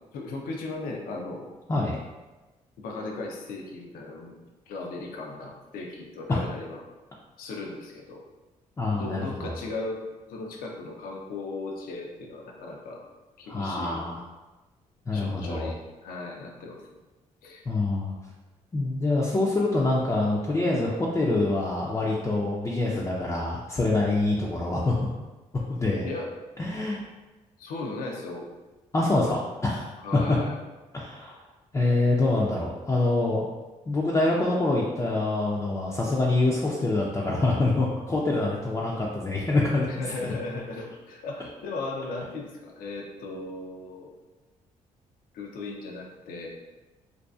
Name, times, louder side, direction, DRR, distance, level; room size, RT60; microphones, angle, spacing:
voice 1, 0.1-1.5 2.8-4.4 4.7-6.8 7.4-8.2 9.0-10.0 10.3-13.0 13.4-14.1 15.1-16.9 17.4-17.7 26.0-26.3 27.6-28.5 30.0-30.6 39.9-44.1 45.3-46.5, left 2 dB, 80° left, 1 dB, 0.5 m, -37 dB
voice 2, 1.7-2.0 6.3-6.4 8.8-9.6 13.5-14.2 15.1-15.7 17.7-18.1 18.7-25.0 25.7-26.1 26.6-27.0 28.9-30.4 30.9-31.4 31.7-33.4 33.9-40.0, left 2 dB, 20° left, -4 dB, 0.4 m, -25 dB
2.6 x 2.3 x 2.3 m, 1.1 s
supercardioid pair, 65°, 15 cm